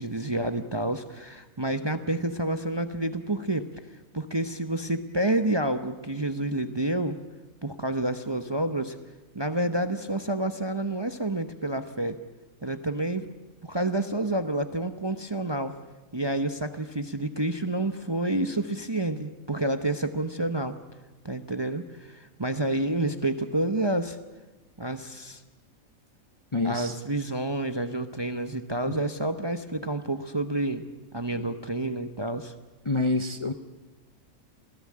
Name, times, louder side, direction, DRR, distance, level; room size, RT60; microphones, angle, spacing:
voice 1, 0.0-3.7 4.1-7.2 7.6-9.0 9.3-12.2 12.6-13.3 13.6-15.7 16.1-20.8 21.2-24.2 24.8-25.4 26.6-30.8 31.1-32.5, right 1 dB, 20° right, 9 dB, 0.8 m, -29 dB
voice 2, 26.5-26.9 28.9-29.0 31.3-31.4 32.8-33.5, left 2 dB, 25° left, 8 dB, 0.8 m, -27 dB
27.0 x 17.0 x 8.6 m, 1.1 s
omnidirectional pair, 1.5 m